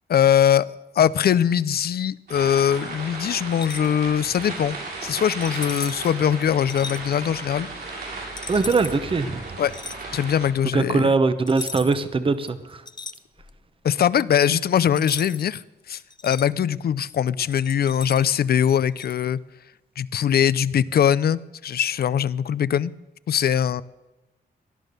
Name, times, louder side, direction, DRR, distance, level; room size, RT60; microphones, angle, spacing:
voice 1, 0.1-0.7 1.0-4.8 5.0-7.7 9.6-9.7 10.1-11.1 13.8-15.6 15.9-19.4 20.0-22.9 23.3-23.8, left 9 dB, 65° left, 17 dB, 0.6 m, -21 dB
sound 1, 2.3-10.5, right 3 dB, 75° right, 7.7 m, -35 dB
sound 2, 3.5-3.9 5.4-6.1 6.7-7.0 8.4-9.0 9.7-10.0 11.5-12.1 12.4-13.6 15.0-15.5 15.9-16.4 17.5-18.4 19.0-19.1, left 4 dB, 25° left, 0.6 m, -36 dB
voice 2, 8.5-9.4 10.7-12.8, right 3 dB, 30° right, 11 dB, 1.0 m, -21 dB
18.0 x 11.0 x 6.7 m, 1.0 s
wide cardioid pair, 115°, 17 cm